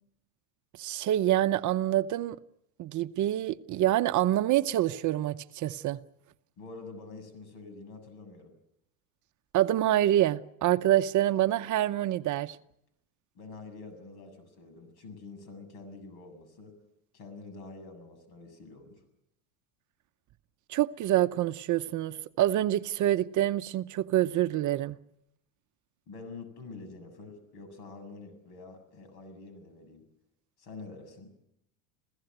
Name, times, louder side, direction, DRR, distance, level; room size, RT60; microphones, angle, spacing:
voice 1, 0.8-2.4 2.8-6.0 9.5-12.6 20.7-25.0, right 13 dB, 40° right, 0.8 m, -26 dB
voice 2, 6.6-8.5 13.3-16.8 17.1-19.0 26.1-30.0 30.6-31.3, left 3 dB, 60° left, 7.4 m, -46 dB
27.5 x 16.5 x 8.0 m
supercardioid pair, 105°, 44 cm